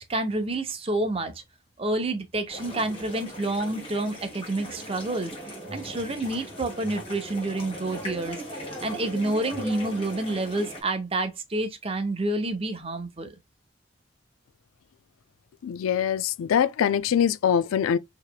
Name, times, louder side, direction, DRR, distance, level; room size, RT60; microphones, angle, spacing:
voice 1, 0.0-1.3 1.8-5.3 5.7-8.4 8.8-13.3, right 2 dB, 30° right, 0.6 m, -28 dB
sound 1, 2.5-10.8, equal, 25° left, 1.7 m, -39 dB
voice 2, 15.6-18.0, left 8 dB, 90° left, 0.3 m, -23 dB
4.8 x 3.0 x 2.2 m
head